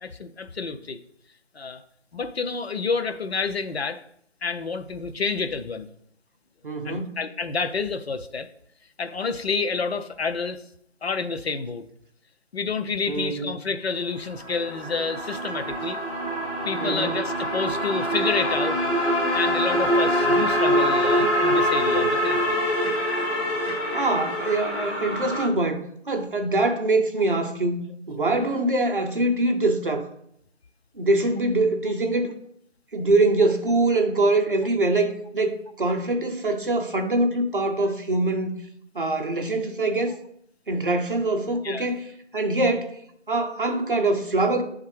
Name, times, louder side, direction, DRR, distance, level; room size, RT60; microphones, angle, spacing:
voice 1, 0.0-1.0 1.5-1.8 2.1-4.0 4.4-5.9 6.8-8.5 9.0-10.6 11.0-11.8 12.5-16.0 16.6-18.8 19.3-22.6 41.6-41.9, left 4 dB, 60° left, 0.5 m, -29 dB
voice 2, 6.6-7.2 13.0-13.5 16.8-17.1 23.9-30.1 31.0-32.3 32.9-38.6 38.9-40.1 40.7-42.0 42.3-43.0 43.3-44.6, right 2 dB, 45° right, 0.7 m, -24 dB
sound 1, 14.1-25.5, equal, 25° left, 1.7 m, -24 dB
8.5 x 3.6 x 3.1 m
figure-of-eight pair, 160°, 36 cm